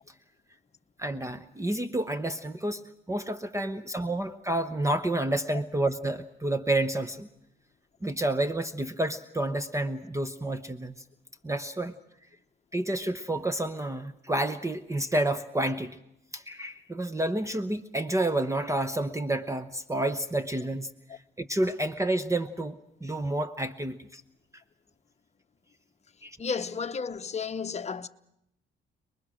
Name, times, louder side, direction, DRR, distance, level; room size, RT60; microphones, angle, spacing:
voice 1, 1.0-2.8 3.1-7.3 8.0-11.0 11.4-11.9 12.7-16.0 16.3-24.2 26.2-26.4, right 1 dB, 15° right, 1.0 m, -30 dB
voice 2, 26.4-28.1, left 5 dB, 35° left, 1.0 m, -32 dB
29.5 x 21.0 x 6.4 m
cardioid pair, 90°, 20 cm